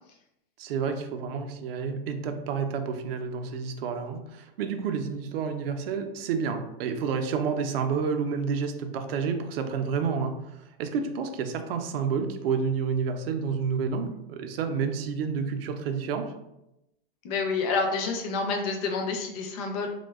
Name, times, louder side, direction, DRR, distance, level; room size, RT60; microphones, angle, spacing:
voice 1, 0.6-16.3, right 6 dB, 75° right, 6 dB, 0.5 m, -29 dB
voice 2, 17.2-19.9, left 4 dB, 40° left, 4 dB, 0.4 m, -28 dB
2.5 x 2.1 x 2.3 m, 0.89 s
supercardioid pair, 140°, 30 cm